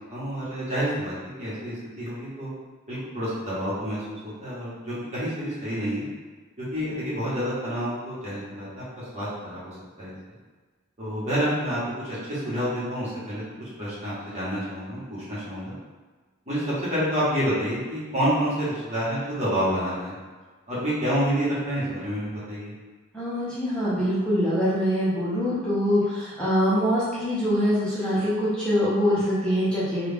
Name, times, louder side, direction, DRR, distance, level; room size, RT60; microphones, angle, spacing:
voice 1, 0.1-2.5 2.9-6.1 6.6-10.1 11.0-15.7 16.5-20.1 20.7-22.7, equal, 35° right, -10 dB, 1.3 m, -28 dB
voice 2, 23.1-30.1, equal, 5° left, -12 dB, 0.7 m, -24 dB
3.2 x 2.4 x 3.4 m, 1.4 s
head